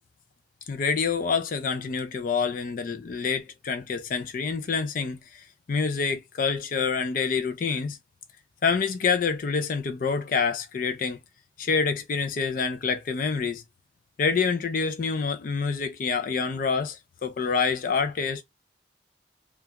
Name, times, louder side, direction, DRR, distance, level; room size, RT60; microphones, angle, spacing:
voice 1, 0.7-8.0 8.6-11.2 11.6-13.6 14.2-18.4, left 5 dB, 45° left, 0.3 m, -27 dB
2.3 x 2.2 x 2.8 m
head